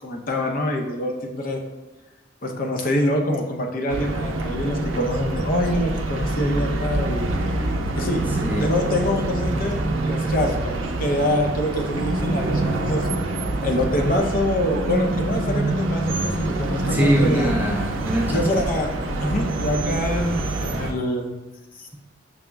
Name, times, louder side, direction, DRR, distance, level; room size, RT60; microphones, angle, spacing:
voice 1, 0.0-1.6 2.4-7.3 7.9-8.2 8.6-13.1 13.6-17.5 18.3-18.9 19.2-21.3, left 1 dB, 45° left, 3 dB, 0.5 m, -25 dB
sound 1, 3.9-20.9, right 2 dB, 85° right, 0.5 m, -26 dB
sound 2, 4.0-10.0, equal, 70° left, 0.9 m, -36 dB
voice 2, 8.3-8.7 16.8-18.7, equal, 10° right, -2 dB, 0.4 m, -23 dB
6.1 x 2.0 x 3.4 m, 1.1 s
head